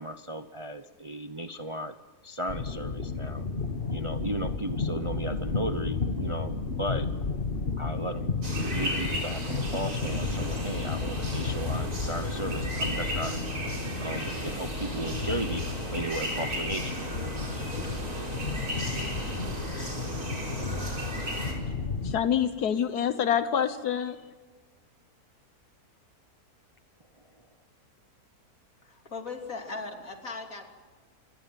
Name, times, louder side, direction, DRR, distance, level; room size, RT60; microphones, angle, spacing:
voice 1, 0.0-1.9 2.2-3.5 3.9-7.1 7.8-13.4 14.0-15.6 15.9-17.3 19.6-20.0, right 1 dB, 25° right, 9 dB, 0.7 m, -36 dB
sound 1, 2.5-22.2, left 4 dB, 40° left, 1.6 m, -33 dB
sound 2, 8.4-21.5, right 1 dB, 70° right, 5.4 m, -35 dB
voice 2, 22.0-24.2, left 8 dB, 80° left, 11 dB, 1.6 m, -26 dB
voice 3, 28.8-30.6, left 3 dB, 60° left, 3 dB, 3.5 m, -38 dB
26.5 x 22.5 x 7.7 m, 1.4 s
omnidirectional pair, 1.6 m